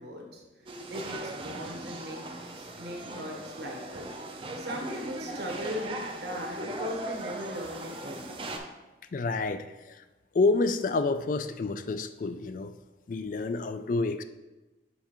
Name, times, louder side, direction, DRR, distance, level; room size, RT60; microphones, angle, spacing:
voice 1, 0.0-2.2 2.6-4.1 4.6-8.4, left 1 dB, 65° right, 0 dB, 1.2 m, -39 dB
sound 1, 0.7-8.6, right 2 dB, 30° right, 0.5 m, -39 dB
voice 2, 9.1-9.7 10.3-12.7 13.1-14.2, left 3 dB, 45° left, 10 dB, 0.3 m, -28 dB
6.9 x 5.5 x 3.0 m, 1.1 s
head